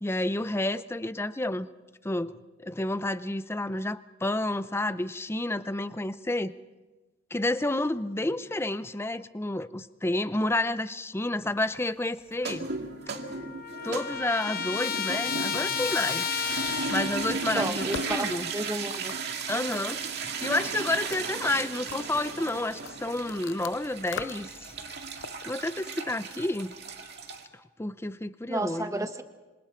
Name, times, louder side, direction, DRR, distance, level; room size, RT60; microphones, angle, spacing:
voice 1, 0.0-1.7 2.0-6.5 7.3-12.7 13.8-16.3 16.9-18.5 19.5-24.5 25.5-26.7 27.8-29.1, left 2 dB, 15° left, 13 dB, 0.6 m, -30 dB
sound 1, 12.3-27.4, right 4 dB, 60° right, 2.2 m, -35 dB
Trumpet, 12.7-12.8 13.0-17.5, left 8 dB, 50° left, 0.9 m, -32 dB
voice 2, 17.5-18.3 18.5-19.1 28.5-29.2, right 2 dB, 15° right, 7 dB, 1.3 m, -31 dB
sound 2, 17.6-23.7 24.1-24.5 24.8-25.9, left 6 dB, 85° left, 0.6 m, -42 dB
26.5 x 26.0 x 4.5 m, 1.2 s
head